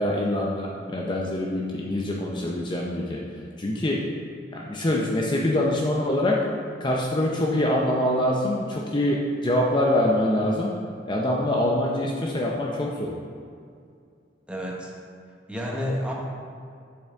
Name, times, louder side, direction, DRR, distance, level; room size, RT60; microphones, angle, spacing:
voice 1, 0.0-3.2 3.6-4.1 4.5-6.5 6.8-10.7 11.1-13.2, left 1 dB, 25° left, -2 dB, 0.6 m, -24 dB
voice 2, 14.5-14.9 15.5-16.2, equal, 5° right, -2 dB, 1.0 m, -29 dB
8.1 x 7.1 x 3.5 m, 2.3 s
head